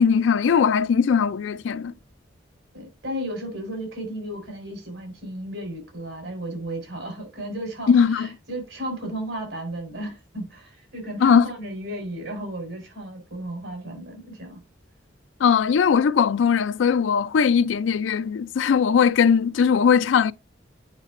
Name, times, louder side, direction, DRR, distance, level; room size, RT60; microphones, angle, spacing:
voice 1, 0.0-1.9 7.9-8.3 11.2-11.5 15.4-20.3, left 6 dB, 85° left, 0.4 m, -19 dB
voice 2, 2.7-14.6, right 1 dB, 85° right, 4.1 m, -34 dB
8.2 x 5.7 x 2.5 m
head